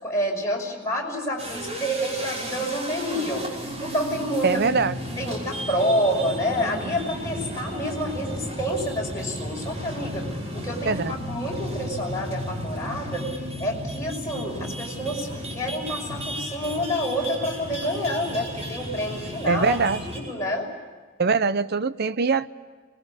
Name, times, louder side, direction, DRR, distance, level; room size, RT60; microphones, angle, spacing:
voice 1, 0.0-4.5 5.2-10.3 10.5-13.3 13.6-19.8 20.0-20.7, equal, 15° left, 5.8 m, -28 dB
sound 1, 1.4-20.4, equal, 35° right, 5.5 m, -34 dB
voice 2, 4.4-5.0 10.9-11.1 19.5-20.1 21.2-22.5, right 4 dB, 55° right, 0.7 m, -22 dB
24.5 x 21.0 x 8.4 m
head